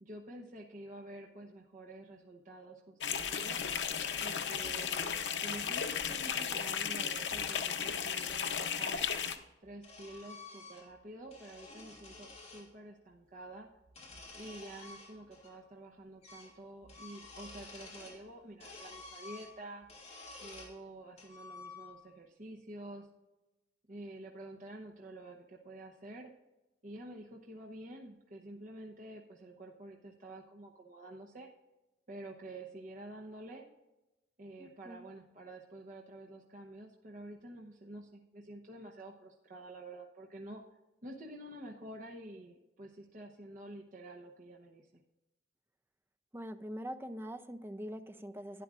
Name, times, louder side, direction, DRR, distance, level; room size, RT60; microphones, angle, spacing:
voice 1, 0.0-3.6 4.2-9.0 9.6-13.7 14.3-19.9 20.4-23.1 23.9-26.3 26.8-31.5 32.1-33.7 34.4-40.6 41.0-44.9, right 1 dB, 50° right, -1 dB, 0.9 m, -49 dB
sound 1, 3.0-9.4, left 7 dB, 90° left, 0.7 m, -35 dB
sound 2, 4.6-5.9 7.1-8.5 9.4-11.0 11.3-12.7 13.8-15.5 15.8-15.9 16.2-16.6 16.8-18.2 18.6-20.8 21.2-22.1, left 3 dB, 35° left, 2.9 m, -52 dB
voice 2, 34.6-35.0 46.3-48.6, equal, 15° right, 10 dB, 0.5 m, -43 dB
12.0 x 10.0 x 2.5 m, 1.0 s
head